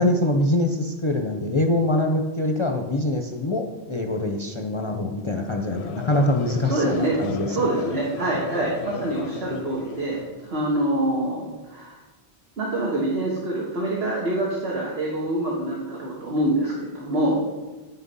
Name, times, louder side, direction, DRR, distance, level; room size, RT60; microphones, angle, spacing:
voice 1, 0.0-8.0, left 1 dB, 35° left, 3 dB, 0.6 m, -24 dB
Conversation / Crowd, 5.4-10.7, left 6 dB, 85° left, 0.9 m, -36 dB
voice 2, 6.6-7.2 7.5-11.9 12.6-17.4, right 1 dB, 75° right, -4 dB, 1.7 m, -25 dB
9.4 x 6.2 x 5.4 m, 1.2 s
omnidirectional pair, 1.1 m